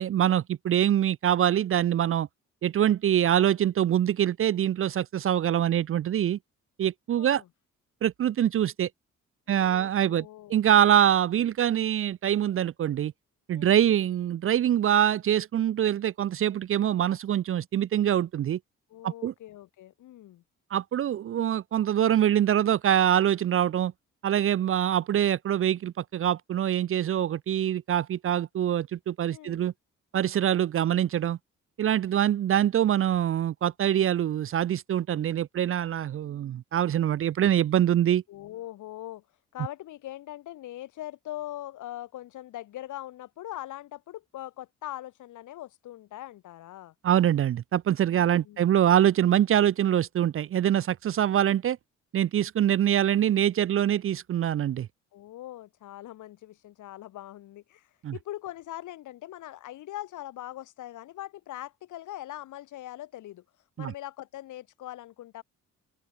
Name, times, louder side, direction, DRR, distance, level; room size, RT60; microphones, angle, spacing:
voice 1, 0.0-2.3 2.6-6.4 6.8-7.4 8.0-8.9 9.5-13.1 13.5-18.6 19.0-19.3 20.7-23.9 24.2-29.7 30.1-31.4 31.8-38.2 47.0-51.8 52.1-54.9 58.0-58.1 63.8-63.9, right 10 dB, 45° right, 0.5 m, -24 dB
voice 2, 7.2-7.5 9.5-10.6 13.5-13.8 18.9-20.4 29.3-29.7 38.3-39.2 39.5-46.9 48.0-48.6 55.1-63.4 63.8-65.4, left 14 dB, 80° left, 3.0 m, -41 dB
open air
cardioid pair, 90°, 30 cm